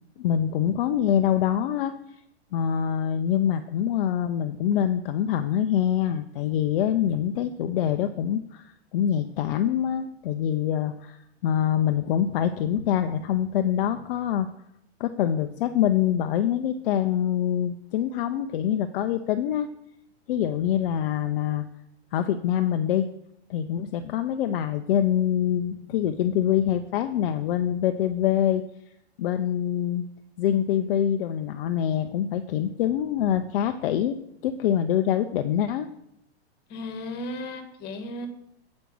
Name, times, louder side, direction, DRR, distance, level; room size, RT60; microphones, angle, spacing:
voice 1, 0.2-1.9 2.5-11.2 11.4-14.5 15.0-19.7 20.3-21.7 22.1-23.1 23.5-28.6 29.2-30.0 30.4-35.9, left 10 dB, 55° left, 8 dB, 0.6 m, -25 dB
voice 2, 36.7-38.3, left 1 dB, 30° left, 7 dB, 1.6 m, -35 dB
8.2 x 5.3 x 6.0 m, 0.79 s
hypercardioid pair, 130°, 33 cm